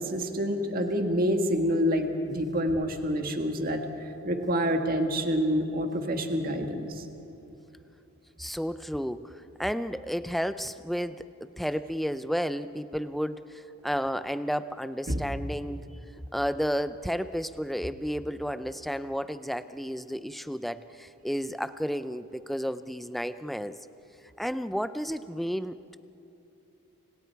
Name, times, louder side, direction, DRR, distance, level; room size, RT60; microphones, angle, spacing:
voice 1, 0.0-3.8 4.3-6.9 15.1-15.2, equal, 40° right, 4 dB, 1.8 m, -27 dB
voice 2, 8.4-9.3 9.6-15.8 16.3-23.8 24.4-26.0, equal, ahead, 12 dB, 0.5 m, -32 dB
30.0 x 27.0 x 4.7 m, 2.8 s
head